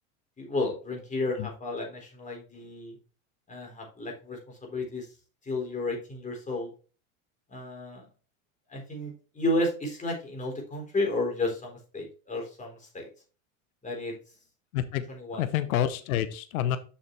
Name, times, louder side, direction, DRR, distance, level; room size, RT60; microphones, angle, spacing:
voice 1, 0.4-3.0 3.5-5.1 5.5-6.7 7.5-8.1 8.7-13.1 13.8-14.1 15.1-15.4, left 2 dB, 15° left, 1 dB, 3.8 m, -32 dB
voice 2, 14.7-15.0 15.4-16.8, left 11 dB, 75° left, 12 dB, 1.0 m, -28 dB
7.2 x 6.4 x 3.2 m, 0.35 s
hypercardioid pair, 100°, 42 cm